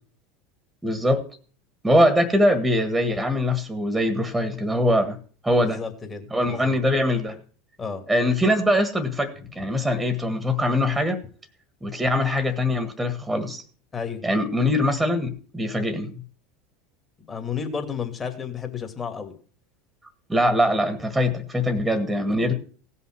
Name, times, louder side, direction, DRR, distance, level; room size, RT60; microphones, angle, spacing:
voice 1, 0.8-1.2 1.8-5.2 5.4-5.8 6.3-7.4 8.1-11.2 11.8-13.6 14.2-16.1 20.3-22.5, left 1 dB, 5° right, 10 dB, 1.6 m, -22 dB
voice 2, 5.6-6.8 7.8-8.0 13.9-14.2 17.3-19.3, left 6 dB, 25° left, 5 dB, 2.5 m, -32 dB
17.0 x 5.7 x 6.2 m, 0.43 s
hypercardioid pair, 80°, 0 cm